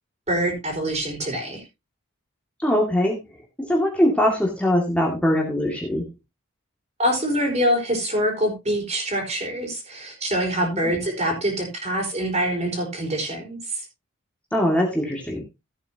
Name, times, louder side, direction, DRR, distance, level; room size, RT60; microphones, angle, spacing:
voice 1, 0.3-1.6 7.0-13.9, equal, 35° right, 2 dB, 4.5 m, -25 dB
voice 2, 2.6-3.2 3.7-6.0 10.6-10.9 14.5-15.4, equal, 5° left, -1 dB, 2.2 m, -22 dB
15.0 x 8.9 x 2.8 m, 0.24 s
head